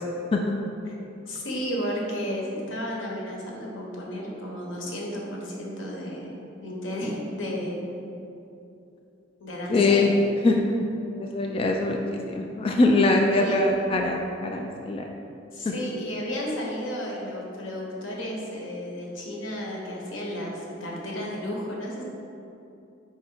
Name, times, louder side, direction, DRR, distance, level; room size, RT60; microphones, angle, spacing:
voice 1, 1.3-6.3 6.6-7.8 9.4-10.1 13.3-13.6 15.5-22.0, equal, 85° left, -2 dB, 1.1 m, -33 dB
voice 2, 9.7-10.1 10.4-10.6 11.2-15.0, left 2 dB, 30° left, 1 dB, 0.3 m, -22 dB
4.9 x 4.2 x 4.6 m, 2.8 s
head